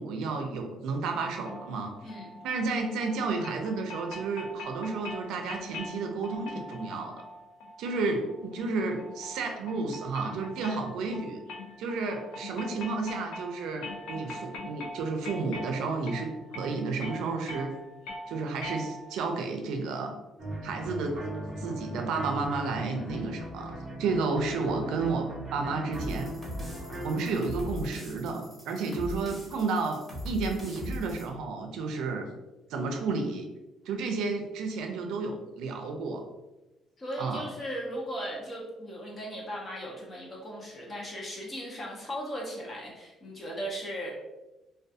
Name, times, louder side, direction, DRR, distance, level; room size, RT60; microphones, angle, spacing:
voice 1, 0.0-1.9 2.4-7.2 7.8-11.4 11.8-17.7 18.3-20.1 20.6-21.2 21.6-26.3 27.0-32.3 32.7-33.5 33.9-36.2 37.2-37.5, right 4 dB, 85° right, 4 dB, 0.4 m, -32 dB
sound 1, 1.4-19.3, left 2 dB, 85° left, 0.4 m, -43 dB
voice 2, 2.0-2.3 10.6-10.8 22.9-23.2 37.0-44.1, equal, 30° left, -2 dB, 0.6 m, -37 dB
sound 2, 20.4-27.4, right 1 dB, 25° right, 0.6 m, -38 dB
sound 3, 25.9-31.3, left 1 dB, 5° left, 0.8 m, -40 dB
2.3 x 2.2 x 2.6 m, 1.0 s
cardioid pair, 135°, 0 cm